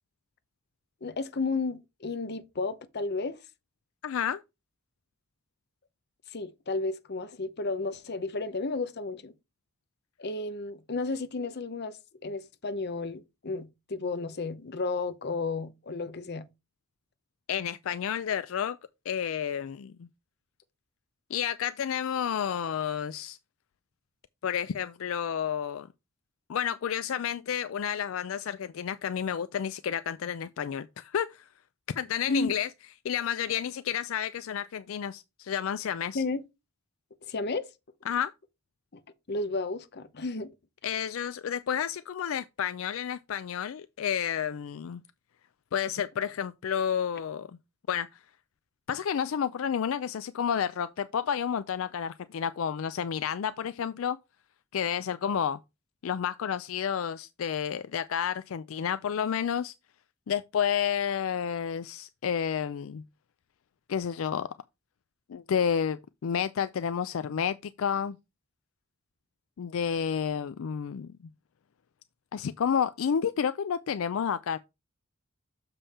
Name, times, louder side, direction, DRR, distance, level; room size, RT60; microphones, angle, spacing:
voice 1, 1.0-3.4 6.3-9.3 10.2-16.4 32.3-32.5 36.1-36.4 37.3-37.6 39.3-40.5, left 3 dB, 55° left, 0.8 m, -32 dB
voice 2, 4.0-4.4 17.5-18.8 19.1-20.1 21.3-23.4 24.4-25.9 26.5-31.4 32.0-32.7 33.0-36.2 38.1-38.3 40.8-45.0 45.7-47.5 47.9-48.1 48.9-54.2 54.7-55.6 56.0-59.7 60.3-63.0 63.9-64.5 65.3-68.2 69.6-71.1 72.3-74.6, left 8 dB, 75° left, 0.4 m, -30 dB
7.0 x 5.4 x 4.2 m
head